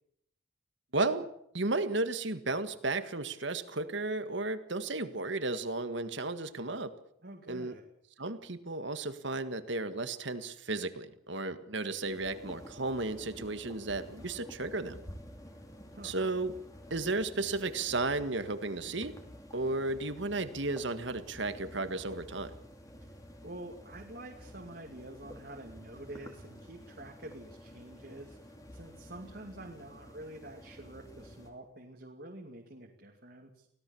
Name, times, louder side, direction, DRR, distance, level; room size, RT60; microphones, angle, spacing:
voice 1, 0.9-1.3 1.5-6.9 7.5-7.7 8.2-15.0 16.0-16.5 16.9-19.2 19.5-22.5, right 2 dB, 70° right, 11 dB, 1.8 m, -34 dB
voice 2, 7.2-7.8 15.9-16.2 23.0-23.1 23.4-33.7, right 1 dB, 50° right, 0 dB, 2.4 m, -47 dB
sound 1, 12.0-31.5, equal, 15° left, 3.0 m, -51 dB
24.0 x 17.5 x 7.1 m, 0.72 s
head